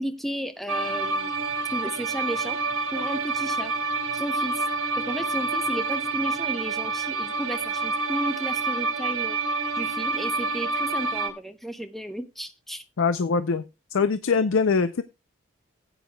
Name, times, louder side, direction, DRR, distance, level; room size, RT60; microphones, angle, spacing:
voice 1, 0.0-1.3 1.7-2.6 2.9-3.7 4.1-4.6 5.0-9.4 9.7-12.8, equal, ahead, 8 dB, 0.7 m, -33 dB
sound 1, 0.7-11.3, right 3 dB, 85° right, 1.7 m, -28 dB
voice 2, 13.0-13.6 13.9-15.0, left 5 dB, 75° left, 12 dB, 0.5 m, -22 dB
15.5 x 9.1 x 2.2 m, 0.25 s
head